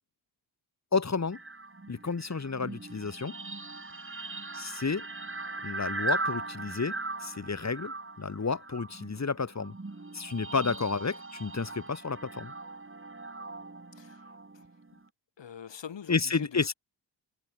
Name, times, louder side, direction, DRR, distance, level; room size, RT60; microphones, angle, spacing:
voice 1, 0.9-1.4 1.9-3.3 4.5-5.1 5.6-9.7 10.1-12.5 16.1-16.7, left 4 dB, 35° left, 3.3 m, -31 dB
sound 1, 1.3-15.1, right 3 dB, 25° right, 6.4 m, -39 dB
voice 2, 13.9-14.6 14.9-15.0 15.4-16.7, left 8 dB, 70° left, 7.2 m, -45 dB
cardioid pair, 55°, 45 cm